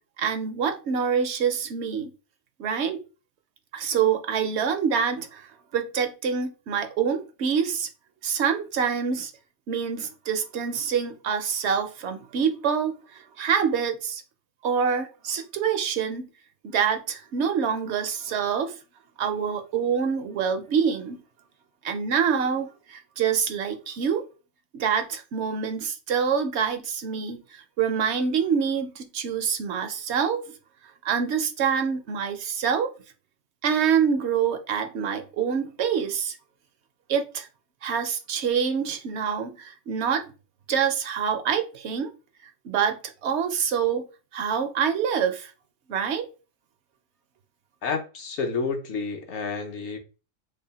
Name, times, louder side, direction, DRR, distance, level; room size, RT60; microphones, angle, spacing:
voice 1, 0.2-2.1 2.6-3.0 3.7-7.9 8.2-9.3 9.7-14.2 14.6-16.3 16.6-18.8 19.2-21.2 21.8-24.2 24.7-30.4 31.0-32.9 33.6-36.4 37.1-37.5 37.8-40.3 40.7-42.1 42.4-44.0 44.3-45.5 45.9-46.3, right 7 dB, 65° right, 0.8 m, -26 dB
voice 2, 47.8-50.0, left 4 dB, 65° left, 1.0 m, -30 dB
3.3 x 2.1 x 4.0 m
omnidirectional pair, 1.3 m